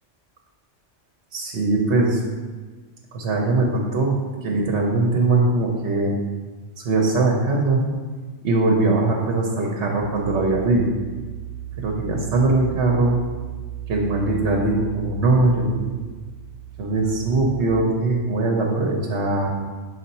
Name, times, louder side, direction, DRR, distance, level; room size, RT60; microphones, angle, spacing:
voice 1, 1.3-2.2 3.1-6.1 6.8-7.8 8.4-10.9 11.8-13.2 13.9-16.0 16.8-19.5, right 2 dB, 65° right, 0 dB, 1.0 m, -21 dB
sound 1, 10.0-17.6, right 10 dB, 45° left, 1.7 m, -36 dB
6.4 x 4.2 x 4.2 m, 1.4 s
omnidirectional pair, 1.3 m